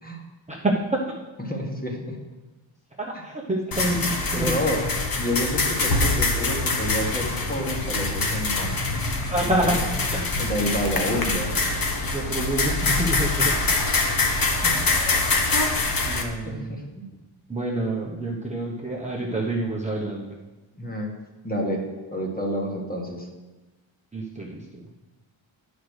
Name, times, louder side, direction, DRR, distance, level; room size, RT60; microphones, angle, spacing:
voice 1, 1.4-2.2 3.1-3.2 4.3-4.8 5.1-8.7 9.4-9.5 10.4-11.5 14.6-14.8 16.4-17.0 20.8-21.1 21.4-21.8 22.1-23.3, equal, 15° left, 0 dB, 1.6 m, -29 dB
voice 2, 3.0-4.8 9.3-9.8 10.1-10.3 12.1-13.5 16.1-16.7 17.5-20.4 24.1-24.6, right 1 dB, 15° right, -4 dB, 1.0 m, -27 dB
sound 1, 3.7-16.2, left 3 dB, 45° left, 1.2 m, -24 dB
9.5 x 5.2 x 6.3 m, 1.2 s
wide cardioid pair, 110°, 49 cm